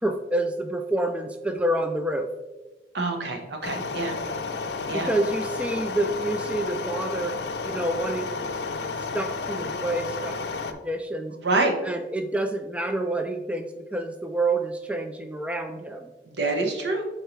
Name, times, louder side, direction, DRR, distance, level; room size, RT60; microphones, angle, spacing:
voice 1, 0.0-2.3 4.9-7.4 7.6-8.6 9.1-11.3 11.8-16.1, right 1 dB, 5° right, 5 dB, 0.3 m, -28 dB
voice 2, 2.9-4.1 4.9-5.1 11.4-11.7 16.4-17.0, right 2 dB, 70° right, 4 dB, 1.1 m, -26 dB
sound 1, 3.6-10.7, left 4 dB, 65° left, 0.5 m, -32 dB
7.9 x 4.5 x 3.2 m, 1.1 s
head